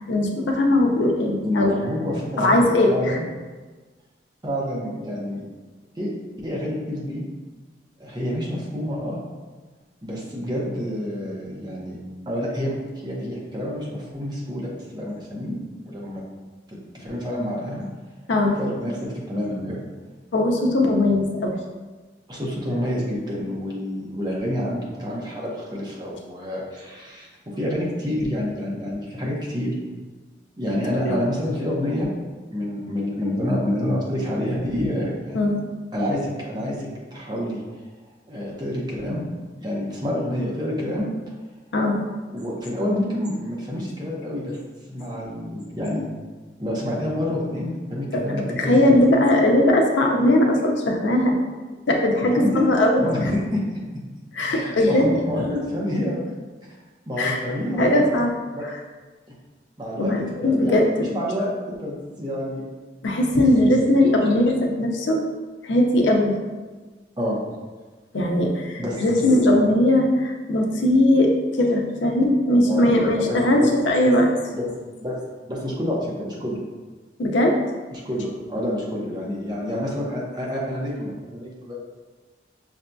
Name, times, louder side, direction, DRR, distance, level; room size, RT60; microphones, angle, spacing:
voice 1, 0.1-1.8 2.4-3.2 18.3-18.6 20.3-21.5 31.0-31.2 35.3-35.6 41.7-42.0 48.1-51.3 51.9-53.0 54.3-55.0 57.2-57.4 57.8-58.3 60.0-61.1 63.0-65.2 65.6-66.3 68.1-71.3 71.6-74.3 77.2-77.5, left 1 dB, 80° left, 1 dB, 0.5 m, -19 dB
voice 2, 1.4-2.6 2.9-3.2 4.4-5.4 6.0-6.1 6.4-7.2 8.0-9.2 10.0-12.0 12.3-15.5 15.8-16.2 16.7-17.9 18.6-19.8 22.3-29.7 30.6-32.1 32.5-35.5 35.9-37.6 38.3-39.3 39.6-41.1 42.3-44.6 44.9-46.0 46.6-48.8 52.2-52.6 53.0-53.6 54.5-56.3 57.1-58.1 58.5-58.7 59.8-60.1 60.4-62.6 63.3-64.2 67.2-67.4 68.8-69.4 72.7-72.9 73.2-73.7 74.0-74.1 74.5-74.7 75.0-76.6 77.9-81.7, left 1 dB, 25° right, -4 dB, 0.7 m, -28 dB
5.8 x 2.6 x 2.2 m, 1.3 s
head